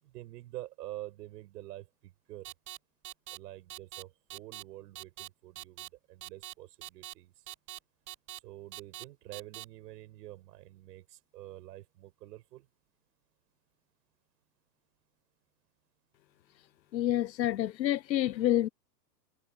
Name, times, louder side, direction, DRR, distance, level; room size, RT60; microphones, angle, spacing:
voice 1, 0.0-2.5 3.3-7.3 8.4-12.7, right 16 dB, 70° right, 6.3 m, -47 dB
sound 1, 2.4-2.8 3.0-3.4 3.7-4.0 4.3-4.6 4.9-5.3 5.6-5.9 6.2-6.5 6.8-7.1 7.5-7.8 8.1-8.4 8.7-9.0 9.3-9.6, right 15 dB, 40° right, 6.3 m, -43 dB
voice 2, 16.9-18.7, left 13 dB, 90° left, 1.0 m, -28 dB
hypercardioid pair, 110°, 50 cm